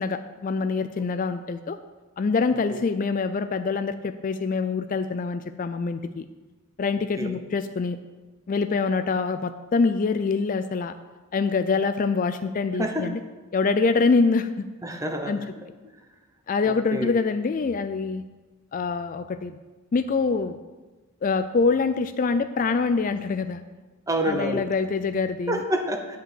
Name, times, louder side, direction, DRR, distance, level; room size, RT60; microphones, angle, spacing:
voice 1, 0.0-1.8 2.2-6.3 6.8-8.0 8.5-10.9 11.3-13.2 13.5-14.7 15.3-15.4 16.5-18.2 18.7-19.6 19.9-20.6 21.2-23.6 24.2-25.6, left 4 dB, 40° left, 10 dB, 0.3 m, -25 dB
voice 2, 12.8-13.1 14.8-15.7 16.6-17.1 24.1-24.7 25.5-26.2, right 1 dB, 15° right, 5 dB, 0.9 m, -28 dB
10.0 x 5.2 x 7.7 m, 1.2 s
head